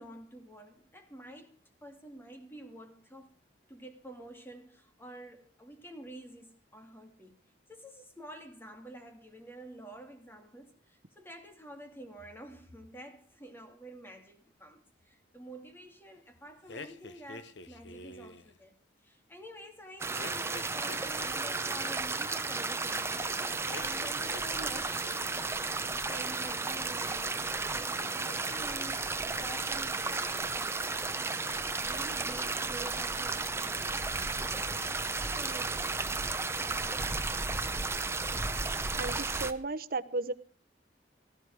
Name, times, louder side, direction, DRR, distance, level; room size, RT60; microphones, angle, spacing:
voice 1, 0.0-3.4 3.7-18.8 19.0-25.2 25.9-37.6, right 1 dB, 10° left, 2.5 m, -49 dB
sound 1, 16.7-18.5 20.2-22.0 23.6-24.8 25.0-25.5, left 2 dB, 75° left, 1.2 m, -47 dB
sound 2, 20.0-39.5, right 3 dB, 15° right, 1.0 m, -33 dB
voice 2, 39.0-40.3, right 3 dB, 55° right, 1.0 m, -34 dB
18.5 x 13.5 x 4.8 m
head